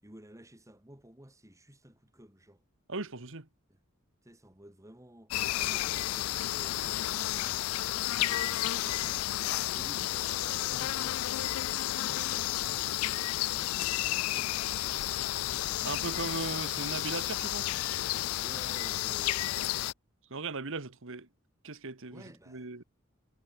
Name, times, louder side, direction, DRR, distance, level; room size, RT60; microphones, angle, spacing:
voice 1, 0.0-2.6 3.7-3.8 4.2-7.8 8.0-11.2 12.0-16.3 18.1-19.7 22.1-22.7, equal, 15° right, 4.9 m, -54 dB
voice 2, 2.9-3.5 15.8-17.7 20.3-21.3 21.6-22.8, right 3 dB, 65° right, 1.7 m, -38 dB
sound 1, 5.3-19.9, left 15 dB, 80° left, 0.3 m, -32 dB
head